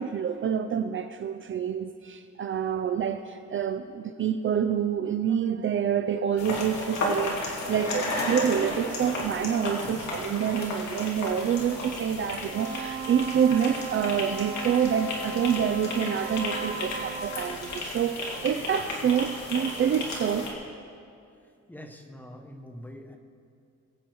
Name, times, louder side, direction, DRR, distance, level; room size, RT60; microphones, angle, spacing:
voice 1, 0.0-20.5, right 8 dB, 45° right, 9 dB, 0.5 m, -27 dB
sound 1, 6.4-20.5, left 2 dB, 65° left, 2.9 m, -34 dB
Wind instrument woodwind instrument, 12.5-17.6, right 5 dB, 85° right, 2.6 m, -37 dB
voice 2, 21.7-23.2, equal, 5° left, 3 dB, 1.2 m, -44 dB
22.5 x 8.5 x 4.7 m, 2.4 s
cardioid pair, 145°, 30 cm